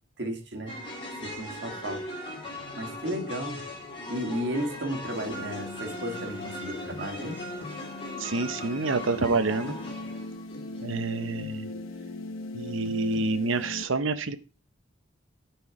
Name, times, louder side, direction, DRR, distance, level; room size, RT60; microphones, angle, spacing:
voice 1, 0.2-0.8 1.1-2.1 2.8-3.6 4.1-7.4, right 1 dB, 55° right, 3 dB, 2.0 m, -34 dB
sound 1, 0.7-10.8, left 1 dB, 25° left, 2.3 m, -39 dB
sound 2, 2.3-2.8 3.1-3.5 5.0-5.1 6.9-11.9 12.8-13.3, left 2 dB, 65° left, 1.7 m, -48 dB
sound 3, 5.1-13.8, left 2 dB, 90° left, 0.9 m, -40 dB
voice 2, 8.2-9.8 10.8-11.7 12.5-14.4, right 3 dB, 80° right, 11 dB, 0.8 m, -28 dB
12.0 x 4.6 x 4.7 m, 0.34 s
head